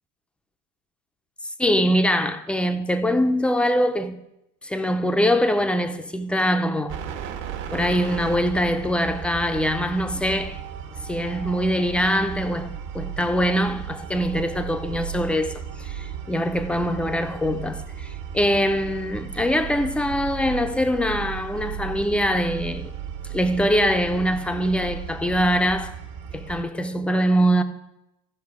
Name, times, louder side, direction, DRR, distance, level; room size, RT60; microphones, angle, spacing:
voice 1, 1.6-4.2 4.6-7.0 7.7-10.6 11.1-22.9 23.3-25.9 26.3-27.6, equal, 5° left, 0.4 m, -23 dB
sound 1, 6.9-26.6, right 8 dB, 70° right, 1.3 m, -35 dB
14.5 x 5.2 x 4.7 m
supercardioid pair, 120°, 40 cm